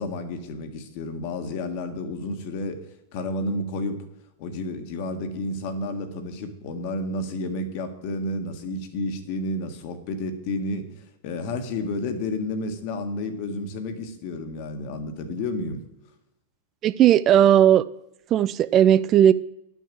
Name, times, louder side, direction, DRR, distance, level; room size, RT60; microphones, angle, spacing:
voice 1, 0.0-2.8 3.1-4.0 4.4-15.8, left 2 dB, 45° left, 7 dB, 1.6 m, -31 dB
voice 2, 16.8-17.8 18.3-19.3, right 10 dB, 30° right, 15 dB, 0.3 m, -16 dB
11.0 x 6.4 x 7.5 m, 0.88 s
figure-of-eight pair, 90°, 0 cm